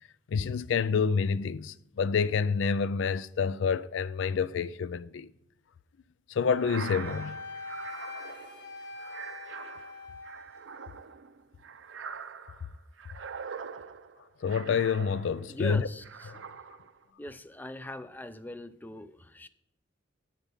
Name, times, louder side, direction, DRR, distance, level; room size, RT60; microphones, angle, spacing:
voice 1, 0.3-5.3 6.3-7.4 14.4-15.9 16.3-16.4, left 6 dB, 75° left, 0.4 m, -28 dB
Wind instrument woodwind instrument, 6.4-10.7, left 3 dB, 60° left, 0.9 m, -43 dB
sound 1, 6.5-15.6 16.0-17.0, right 6 dB, 80° right, 0.6 m, -44 dB
voice 2, 15.5-16.4 17.2-19.5, left 2 dB, 10° left, 0.4 m, -41 dB
8.3 x 7.3 x 5.5 m
head